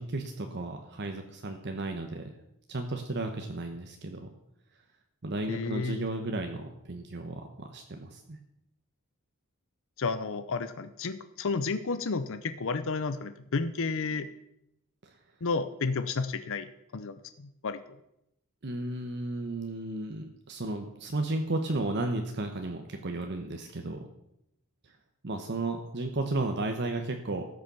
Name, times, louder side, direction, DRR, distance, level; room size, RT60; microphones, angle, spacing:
voice 1, 0.0-2.3 2.7-4.3 5.2-8.4 15.0-15.2 18.6-24.1 24.8-24.9 25.2-27.5, right 2 dB, 50° right, 4 dB, 1.1 m, -34 dB
voice 2, 5.5-6.0 10.0-14.3 15.4-17.8, left 4 dB, 65° left, 11 dB, 0.7 m, -32 dB
14.0 x 6.7 x 6.9 m, 0.82 s
head